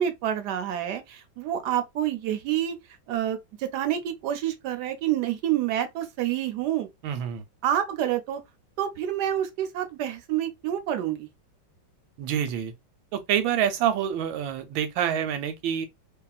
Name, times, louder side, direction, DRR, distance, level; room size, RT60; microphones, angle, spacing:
voice 1, 0.0-2.8 3.1-6.9 7.6-8.4 8.8-11.3, right 11 dB, 70° right, 1.1 m, -28 dB
voice 2, 7.0-7.4 12.2-12.7 13.1-15.9, right 9 dB, 90° right, 1.4 m, -27 dB
2.8 x 2.7 x 2.3 m
omnidirectional pair, 2.1 m